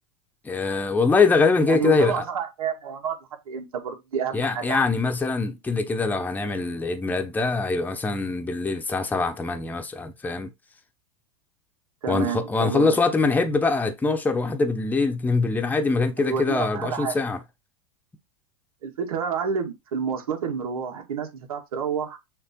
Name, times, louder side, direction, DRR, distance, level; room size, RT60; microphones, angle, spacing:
voice 1, 0.4-2.2 4.3-10.5 12.1-17.4, left 4 dB, 10° left, 1.0 m, -23 dB
voice 2, 1.7-3.2 3.5-4.8 12.0-13.0 16.2-17.2 18.8-22.2, right 7 dB, 90° right, 2.2 m, -29 dB
6.6 x 3.3 x 4.5 m
supercardioid pair, 130°, 18 cm